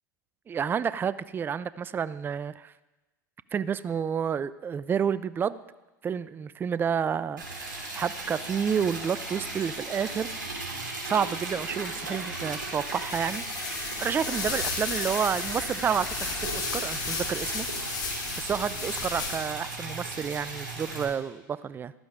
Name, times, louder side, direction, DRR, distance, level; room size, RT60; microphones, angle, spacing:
voice 1, 0.5-2.7 3.5-5.6 6.0-7.4 7.9-10.3 11.0-16.3 16.5-17.7 18.4-21.9, right 7 dB, 20° right, 16 dB, 0.3 m, -30 dB
Liquid, 7.4-21.0, right 2 dB, 85° right, 3.2 m, -36 dB
sound 1, 12.8-19.7, left 5 dB, 40° left, 2.1 m, -34 dB
15.0 x 12.0 x 2.5 m, 1.1 s
hypercardioid pair, 85°, 10 cm